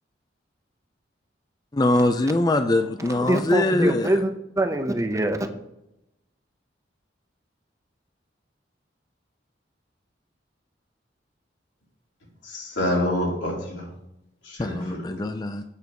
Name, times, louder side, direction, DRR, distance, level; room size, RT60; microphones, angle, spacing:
voice 1, 1.7-4.2 14.6-15.6, left 2 dB, 20° left, 8 dB, 0.4 m, -23 dB
voice 2, 3.2-5.5, right 1 dB, 15° right, 7 dB, 0.6 m, -24 dB
voice 3, 12.4-13.9 14.4-15.2, left 1 dB, 90° left, -3 dB, 3.4 m, -27 dB
8.3 x 4.5 x 6.9 m, 0.85 s
head